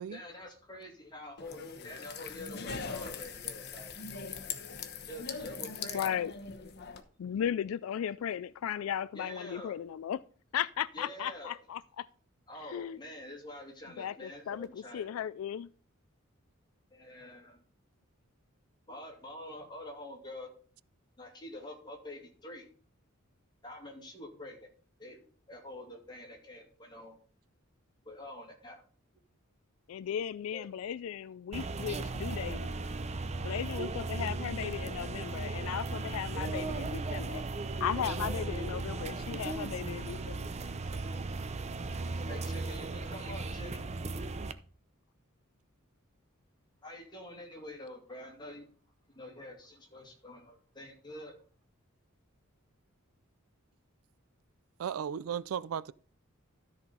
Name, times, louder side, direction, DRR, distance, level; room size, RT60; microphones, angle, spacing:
voice 1, 0.1-4.0 5.0-6.0 9.1-9.8 10.9-11.6 12.5-15.1 16.9-17.6 18.9-20.5 21.2-22.7 23.6-24.7 25.0-27.2 28.0-28.8 30.5-30.7 42.3-43.9 46.8-48.7 49.1-51.4, left 1 dB, 20° left, 2.4 m, -47 dB
sound 1, 1.4-7.0, left 5 dB, 50° left, 1.0 m, -41 dB
voice 2, 5.9-6.3 7.2-10.2 10.5-12.1 12.7-13.0 14.0-15.7 29.9-32.7 33.4-37.4 37.8-40.5, left 9 dB, 70° left, 0.3 m, -36 dB
sound 2, 31.5-44.5, right 3 dB, 30° right, 0.6 m, -36 dB
voice 3, 54.8-55.9, right 8 dB, 75° right, 0.4 m, -35 dB
13.0 x 4.3 x 5.4 m
head